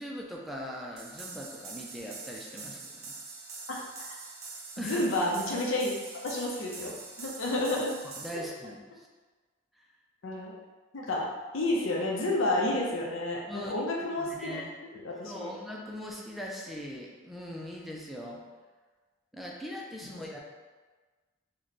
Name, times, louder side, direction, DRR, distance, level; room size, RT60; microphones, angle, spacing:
voice 1, 0.0-3.1 4.8-5.1 8.2-9.1 9.8-9.9 13.5-13.7 14.2-14.7 15.2-18.4 19.3-20.4, equal, ahead, -2 dB, 0.4 m, -40 dB
sound 1, 1.0-8.3, right 4 dB, 55° right, 0.6 m, -44 dB
voice 2, 4.8-5.9 6.2-7.9 10.2-10.5 10.9-11.3 11.5-14.6 14.9-15.5 20.0-20.2, left 1 dB, 85° left, -2 dB, 0.7 m, -30 dB
3.1 x 2.2 x 4.0 m, 1.3 s
head